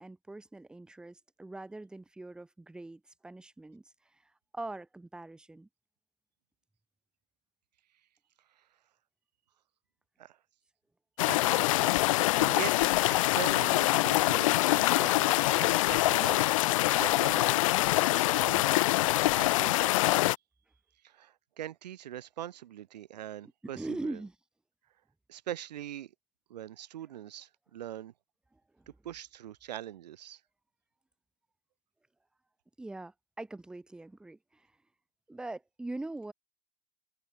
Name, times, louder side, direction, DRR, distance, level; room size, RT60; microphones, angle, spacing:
voice 1, 0.0-3.8 4.1-5.7 23.6-24.3 28.5-29.0 32.8-34.7 35.3-36.3, right 2 dB, 5° right, 2.2 m, -42 dB
sound 1, 11.2-20.4, left 18 dB, 55° left, 0.4 m, -25 dB
voice 2, 11.3-12.0 12.3-12.8 13.2-16.5 16.9-17.6 18.0-18.7 19.0-20.0 21.0-24.2 25.3-26.1 26.5-28.1 28.9-30.4, right 12 dB, 90° right, 2.4 m, -42 dB
supercardioid pair, 165°, 21 cm